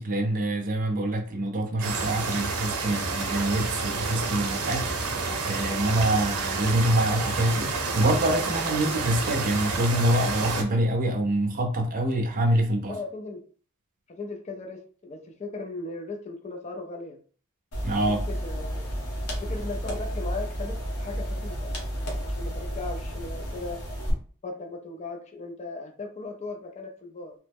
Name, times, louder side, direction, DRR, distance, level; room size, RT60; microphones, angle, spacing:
voice 1, 0.0-12.9 17.8-18.2, right 1 dB, 40° right, 0.5 m, -26 dB
sound 1, 1.8-10.6, right 4 dB, 85° right, 0.6 m, -29 dB
voice 2, 12.9-13.4 14.1-17.2 18.1-18.9 19.4-21.7 22.2-23.8 24.4-27.3, left 3 dB, 30° left, 0.4 m, -37 dB
sound 2, 17.7-24.1, equal, 80° left, 1.0 m, -32 dB
2.9 x 2.1 x 3.4 m
head